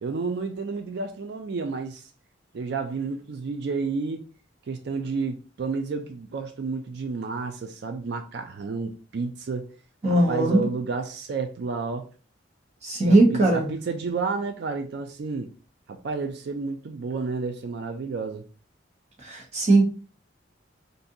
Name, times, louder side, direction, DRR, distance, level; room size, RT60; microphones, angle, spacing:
voice 1, 0.0-2.1 2.5-4.2 4.7-9.7 10.0-12.1 13.0-15.5 15.9-18.5, right 4 dB, 60° right, 0.4 m, -31 dB
voice 2, 10.0-10.6 12.8-13.7 19.2-19.8, right 2 dB, 35° right, 1.0 m, -19 dB
2.7 x 2.5 x 3.7 m
head